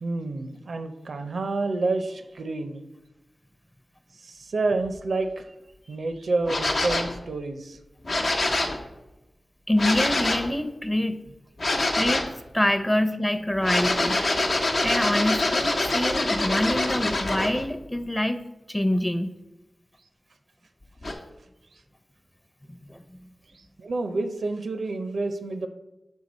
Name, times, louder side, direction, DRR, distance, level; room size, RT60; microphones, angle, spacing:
voice 1, 0.0-2.8 4.2-5.5 5.9-7.8 23.5-25.7, right 3 dB, 80° right, 8 dB, 0.5 m, -29 dB
sound 1, 6.4-7.2 8.0-8.8 9.8-10.5 11.6-12.3 13.6-17.6 21.0-21.1, left 2 dB, 75° left, 0.9 m, -25 dB
voice 2, 9.7-11.2 11.9-12.3 12.5-14.2 14.5-18.4 18.7-19.3 22.7-23.0, left 1 dB, 15° left, 10 dB, 0.6 m, -26 dB
6.3 x 4.6 x 4.1 m, 1.0 s
cardioid pair, 40°, 0 cm